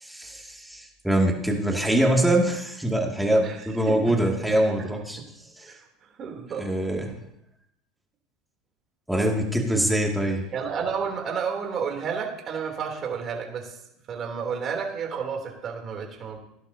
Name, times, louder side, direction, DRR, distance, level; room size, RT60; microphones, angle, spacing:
voice 1, 0.0-5.2 5.6-5.7 6.5-7.1 9.1-10.4, right 1 dB, 5° right, -1 dB, 2.5 m, -24 dB
voice 2, 3.9-4.3 5.6-5.8 6.2-6.7 10.5-13.8 14.1-16.4, right 6 dB, 35° right, 1 dB, 3.3 m, -31 dB
17.5 x 11.5 x 2.9 m, 0.79 s
supercardioid pair, 120°, 0 cm